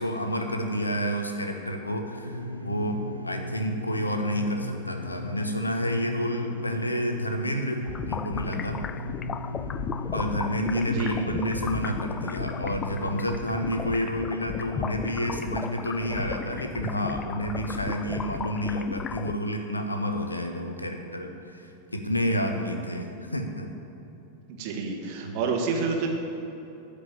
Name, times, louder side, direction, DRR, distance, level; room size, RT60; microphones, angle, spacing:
voice 1, 0.0-8.8 10.1-21.7 21.9-23.7 25.2-25.4, equal, 80° left, 5 dB, 1.1 m, -29 dB
sound 1, 2.2-13.4, left 1 dB, 85° right, 0.7 m, -36 dB
sound 2, 7.8-19.4, left 7 dB, 25° left, 0.3 m, -35 dB
voice 2, 24.5-26.1, right 5 dB, 45° right, 1 dB, 1.9 m, -28 dB
13.5 x 5.2 x 8.8 m, 2.9 s
figure-of-eight pair, 90°, 0 cm